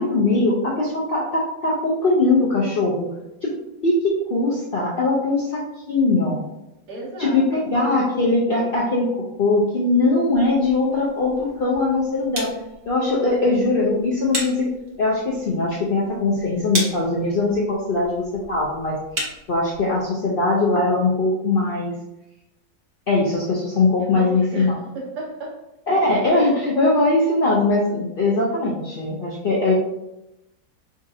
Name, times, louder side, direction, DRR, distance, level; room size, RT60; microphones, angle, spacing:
voice 1, 0.0-3.1 3.4-3.5 3.8-6.4 7.2-12.5 12.9-14.7 15.0-19.0 19.5-21.9 23.1-24.7 25.9-29.7, left 2 dB, 60° left, -5 dB, 0.5 m, -21 dB
voice 2, 6.9-7.4 24.1-25.6, right 2 dB, 80° right, -2 dB, 1.6 m, -34 dB
sound 1, 10.3-20.1, right 1 dB, 40° right, 1.0 m, -36 dB
5.0 x 2.4 x 2.7 m, 0.90 s
omnidirectional pair, 1.7 m